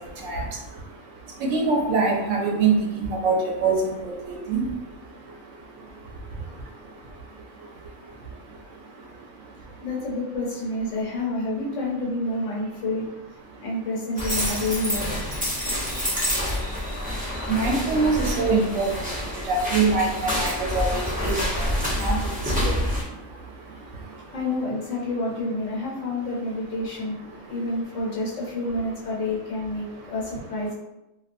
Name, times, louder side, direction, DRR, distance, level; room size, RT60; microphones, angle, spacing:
voice 1, 0.0-9.9 13.5-13.7 15.4-24.4 27.3-27.7 29.8-30.1, right 4 dB, 75° right, 0 dB, 0.9 m, -28 dB
voice 2, 9.8-13.0 13.6-15.3 24.3-27.2 27.5-30.7, left 2 dB, 70° left, -3 dB, 1.0 m, -28 dB
sound 1, 14.2-23.0, equal, 15° right, 0.3 m, -27 dB
2.5 x 2.3 x 2.5 m, 0.94 s
omnidirectional pair, 1.4 m